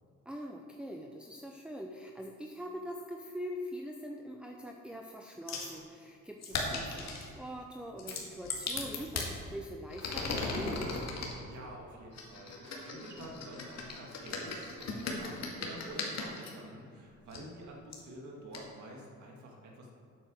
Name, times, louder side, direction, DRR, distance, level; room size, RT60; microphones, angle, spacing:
voice 1, 0.3-10.9, equal, 5° right, 1 dB, 0.8 m, -43 dB
sound 1, 5.5-5.7 6.4-7.3 8.0-9.3 9.9-11.3 12.1-16.5 17.3-17.4 17.9-18.0 18.5-18.6, left 3 dB, 60° left, 2.1 m, -37 dB
voice 2, 11.5-19.9, right 1 dB, 70° right, 0 dB, 2.3 m, -48 dB
8.8 x 7.8 x 6.4 m, 2.5 s
cardioid pair, 90°, 30 cm